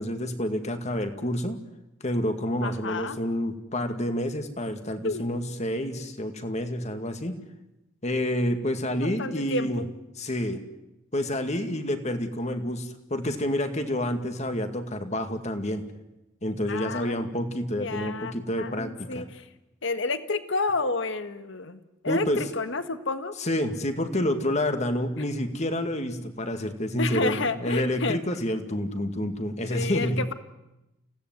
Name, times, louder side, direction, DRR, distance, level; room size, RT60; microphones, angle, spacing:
voice 1, 0.0-1.6 2.0-7.4 8.0-9.8 10.2-10.6 11.1-15.8 16.4-19.3 22.1-22.4 23.4-30.2, left 1 dB, 35° left, 7 dB, 2.2 m, -28 dB
voice 2, 2.6-3.2 5.0-5.3 9.0-9.8 16.7-17.3 17.7-19.5 19.8-23.3 27.0-28.2 29.7-30.3, left 3 dB, 60° left, 11 dB, 1.6 m, -30 dB
29.5 x 17.0 x 9.5 m, 0.94 s
head